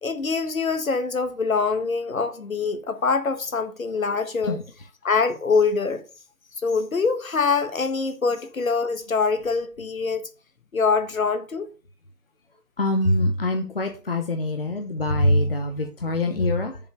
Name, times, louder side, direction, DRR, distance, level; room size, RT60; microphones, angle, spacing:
voice 1, 0.0-4.6 5.0-6.0 6.6-10.2 10.7-11.7, left 4 dB, 60° left, 1.5 m, -24 dB
voice 2, 12.8-16.8, left 1 dB, 40° left, 0.9 m, -24 dB
7.1 x 5.3 x 6.7 m
figure-of-eight pair, 160°, 47 cm